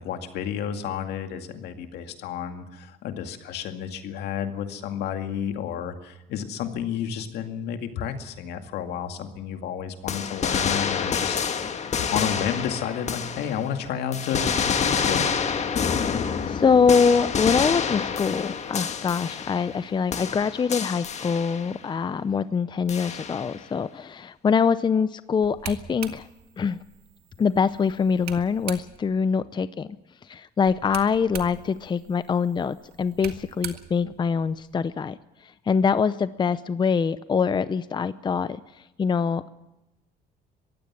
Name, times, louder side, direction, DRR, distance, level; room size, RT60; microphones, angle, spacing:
voice 1, 0.0-11.5 12.0-15.3, left 8 dB, 75° left, 6 dB, 2.2 m, -31 dB
sound 1, 10.1-13.8 14.1-19.8 20.1-21.8 22.9-23.6, left 6 dB, 40° left, 1.6 m, -28 dB
voice 2, 16.0-26.3 26.6-26.8 27.4-29.9 30.3-35.2 35.7-38.6 39.0-39.5, left 6 dB, 25° left, 14 dB, 0.6 m, -24 dB
sound 2, 25.4-29.2 30.6-34.8, right 10 dB, 75° right, 1.8 m, -42 dB
22.5 x 15.5 x 7.5 m, 0.95 s
cardioid pair, 110°, 17 cm